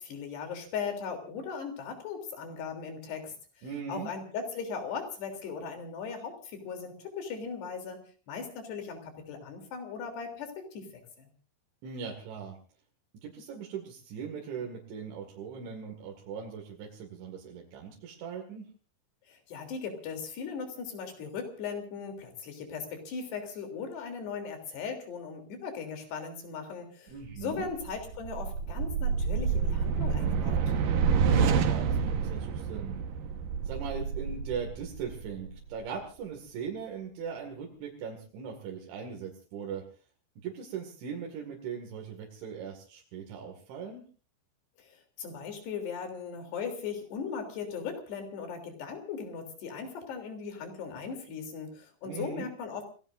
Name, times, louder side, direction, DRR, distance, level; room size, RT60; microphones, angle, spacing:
voice 1, 0.0-8.0 8.3-10.9 11.2-11.3 19.3-30.6 44.8-52.8, left 6 dB, 65° left, 5 dB, 5.4 m, -38 dB
voice 2, 3.6-4.1 11.8-12.6 13.2-18.7 27.1-27.7 31.2-33.0 33.6-39.8 40.4-44.0 52.0-52.5, right 6 dB, 85° right, 0 dB, 4.6 m, -39 dB
sound 1, 27.4-35.8, right 6 dB, 65° right, 2.5 m, -29 dB
29.5 x 18.0 x 2.6 m, 0.39 s
omnidirectional pair, 5.2 m